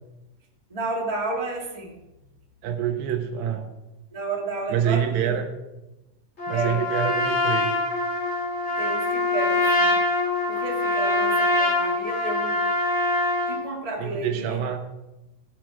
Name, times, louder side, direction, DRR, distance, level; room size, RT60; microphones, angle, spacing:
voice 1, 0.7-2.0 4.1-5.4 6.5-6.9 8.8-10.0 10.5-12.7 13.5-14.7, right 3 dB, 15° right, -1 dB, 1.6 m, -32 dB
voice 2, 2.6-3.7 4.7-5.5 6.5-7.8 14.0-14.9, right 8 dB, 85° right, 6 dB, 2.9 m, -26 dB
Trumpet, 6.4-13.6, left 2 dB, 20° left, 2.9 m, -24 dB
17.0 x 7.8 x 4.9 m, 0.98 s
omnidirectional pair, 3.9 m